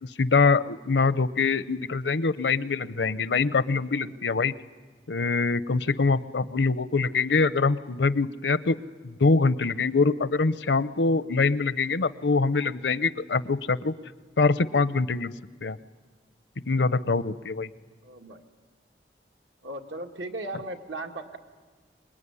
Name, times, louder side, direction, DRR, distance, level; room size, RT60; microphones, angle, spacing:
voice 1, 0.0-4.5 5.1-8.8 9.0-13.9 14.4-15.3 15.6-15.8 16.7-17.7, left 4 dB, 80° left, 16 dB, 0.7 m, -24 dB
voice 2, 18.0-18.4 19.6-21.4, right 2 dB, 90° right, 4 dB, 2.0 m, -37 dB
26.0 x 21.0 x 9.8 m, 1.4 s
head